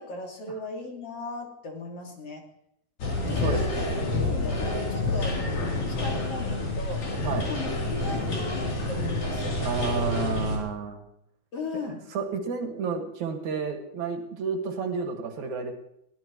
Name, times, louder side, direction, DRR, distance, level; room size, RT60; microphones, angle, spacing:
voice 1, 0.0-2.5 3.3-3.6 4.2-5.7 6.0-7.1 7.4-9.5 11.5-12.1, left 2 dB, 55° left, 0 dB, 3.3 m, -37 dB
sound 1, 3.0-10.6, left 2 dB, 75° left, 4.9 m, -28 dB
voice 2, 3.2-3.9 7.2-7.5 9.6-11.0 11.7-15.7, right 5 dB, 80° right, 3 dB, 3.3 m, -31 dB
22.0 x 15.5 x 3.1 m, 0.77 s
omnidirectional pair, 3.3 m